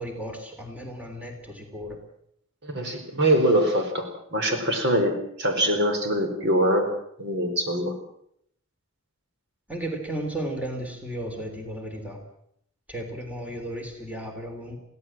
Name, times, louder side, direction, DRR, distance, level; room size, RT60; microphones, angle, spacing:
voice 1, 0.0-2.0 9.7-12.2 12.9-14.8, right 1 dB, 5° right, 3 dB, 3.3 m, -34 dB
voice 2, 2.6-6.9 7.2-7.9, right 1 dB, 60° right, 5 dB, 4.6 m, -23 dB
23.0 x 16.5 x 7.6 m, 0.71 s
head